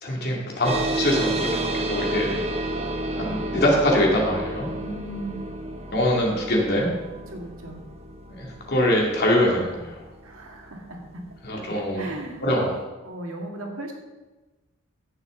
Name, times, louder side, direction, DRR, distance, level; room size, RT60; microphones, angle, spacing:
voice 1, 0.0-2.3 3.2-4.7 5.9-6.9 8.4-10.0 11.4-12.8, left 1 dB, 50° left, -2 dB, 2.6 m, -23 dB
sound 1, 0.6-11.6, right 2 dB, 30° right, 1.2 m, -31 dB
voice 2, 4.8-5.5 7.3-7.8 10.2-11.0 11.5-12.4 13.0-13.9, right 1 dB, 70° right, 1 dB, 2.0 m, -36 dB
15.5 x 7.0 x 3.9 m, 1.2 s
head